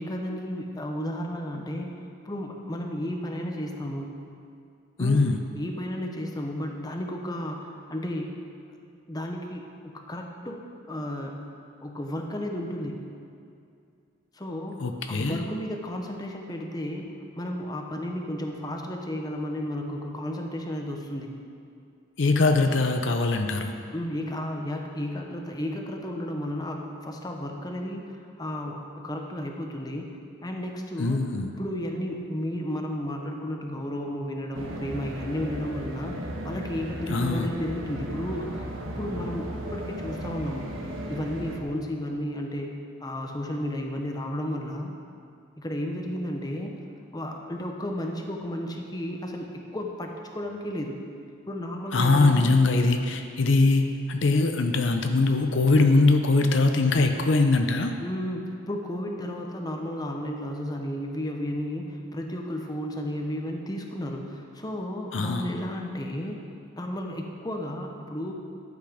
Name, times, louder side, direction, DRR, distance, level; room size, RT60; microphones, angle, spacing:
voice 1, 0.0-1.9 2.2-4.1 5.0-5.3 5.5-8.4 9.1-9.6 9.9-11.5 11.8-13.0 14.3-21.3 23.9-40.7 41.1-44.9 45.6-46.8 47.1-51.0 51.5-52.6 58.0-66.4 66.8-68.3, equal, 20° left, 2 dB, 0.9 m, -33 dB
voice 2, 5.0-5.4 14.8-15.4 22.2-23.7 31.0-31.5 37.1-37.5 51.9-57.9 65.1-65.5, left 3 dB, 65° left, 5 dB, 0.6 m, -22 dB
sound 1, 34.5-41.6, equal, 80° right, 1.3 m, -35 dB
11.5 x 8.2 x 5.0 m, 2.4 s
head